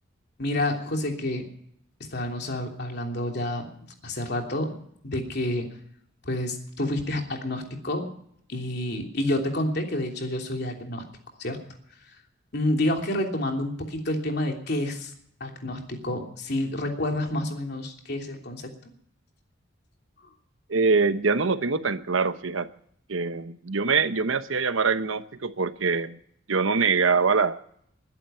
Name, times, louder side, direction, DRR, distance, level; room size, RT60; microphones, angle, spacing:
voice 1, 0.4-1.4 2.1-4.8 5.0-5.6 6.2-8.1 8.5-11.0 11.4-11.6 12.5-15.1 15.4-18.7, left 1 dB, 55° left, 2 dB, 3.1 m, -29 dB
voice 2, 20.7-22.7 23.1-26.2 26.5-27.6, right 4 dB, 80° right, 11 dB, 1.0 m, -24 dB
21.5 x 11.0 x 5.7 m, 0.70 s
head